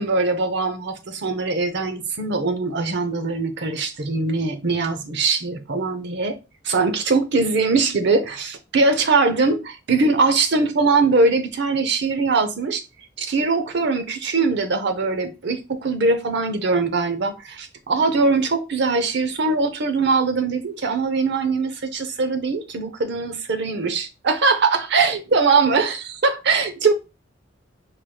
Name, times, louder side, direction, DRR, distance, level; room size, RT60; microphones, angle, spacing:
voice 1, 0.0-6.4 6.6-12.8 13.2-26.9, right 3 dB, 60° right, 0.7 m, -21 dB
4.7 x 3.2 x 2.2 m
head